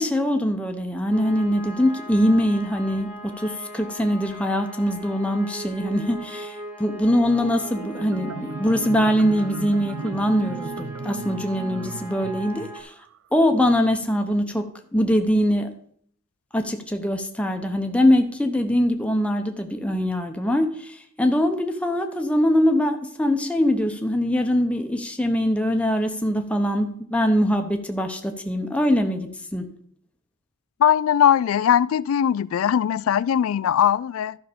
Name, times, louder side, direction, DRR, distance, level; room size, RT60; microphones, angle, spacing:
voice 1, 0.0-12.9 13.3-14.6 14.9-15.7 16.5-29.7, equal, 5° left, 0.8 m, -22 dB
sound 1, 1.1-12.8, equal, 15° right, 2.0 m, -39 dB
Marimba xylophone, 7.6-13.2, right 5 dB, 80° right, 0.4 m, -36 dB
voice 2, 30.8-34.4, left 9 dB, 80° left, 0.3 m, -20 dB
12.0 x 5.7 x 5.1 m
head